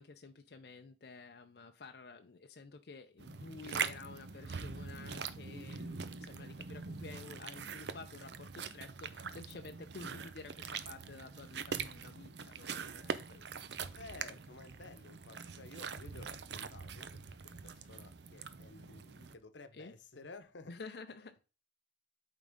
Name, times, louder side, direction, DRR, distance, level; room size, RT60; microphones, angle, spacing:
voice 1, 0.0-14.0 19.7-19.9 20.7-21.5, left 4 dB, 60° left, 0.5 m, -51 dB
sound 1, 3.2-19.3, right 6 dB, 70° right, 0.6 m, -43 dB
voice 2, 13.9-20.7, left 3 dB, 90° left, 0.9 m, -54 dB
8.7 x 3.7 x 3.5 m
head